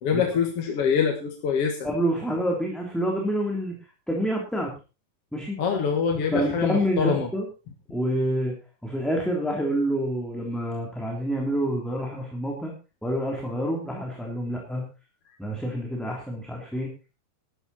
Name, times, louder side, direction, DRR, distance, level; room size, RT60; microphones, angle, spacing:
voice 1, 0.0-1.9 5.6-7.3, left 6 dB, 50° left, 2 dB, 2.4 m, -25 dB
voice 2, 1.8-3.7 4.1-4.7 5.3-5.6 6.3-7.5 7.9-8.5 8.8-12.7 13.0-14.8 15.4-16.9, equal, ahead, -1 dB, 2.8 m, -27 dB
13.0 x 12.5 x 4.3 m, 0.31 s
omnidirectional pair, 3.9 m